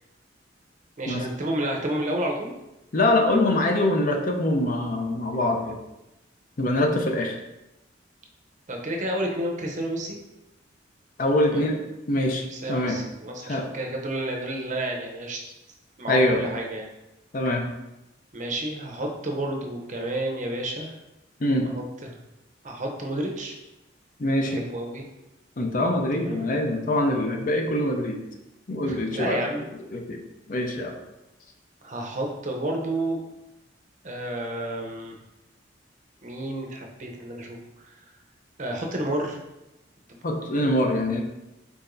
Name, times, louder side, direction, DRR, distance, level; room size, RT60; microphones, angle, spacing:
voice 1, 1.0-2.5 8.7-10.2 11.5-11.7 12.5-15.4 16.0-16.9 18.3-20.9 21.7-22.2 22.6-23.6 24.4-25.0 26.1-26.4 28.8-29.6 31.8-33.2 34.0-35.2 36.2-37.6 37.8-38.0 38.6-39.4 40.5-40.7, right 1 dB, 40° right, 1 dB, 0.7 m, -30 dB
voice 2, 2.9-5.8 6.6-7.4 11.2-11.8 12.1-13.0 13.4-13.6 16.1-16.4 17.3-17.6 21.4-21.7 24.2-24.6 25.6-28.2 28.7-29.5 29.7-30.2 30.5-31.0 40.2-41.2, left 1 dB, 45° left, 3 dB, 0.5 m, -24 dB
4.7 x 4.2 x 2.6 m, 0.95 s
head